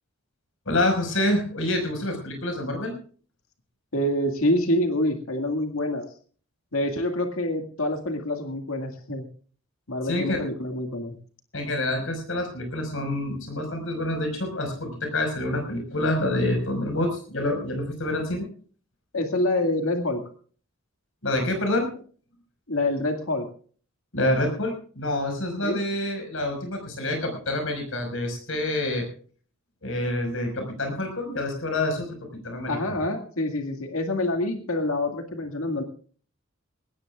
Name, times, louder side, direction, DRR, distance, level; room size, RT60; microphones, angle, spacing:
voice 1, 0.7-3.0 10.0-10.4 11.5-18.5 21.2-21.9 24.1-29.1 29.8-32.8, left 1 dB, 70° left, 4 dB, 5.4 m, -27 dB
voice 2, 3.9-6.1 6.7-9.3 9.9-11.1 19.1-20.2 22.7-23.5 25.6-25.8 32.6-35.8, left 1 dB, 90° left, 5 dB, 2.1 m, -26 dB
20.5 x 18.0 x 2.4 m, 0.43 s
head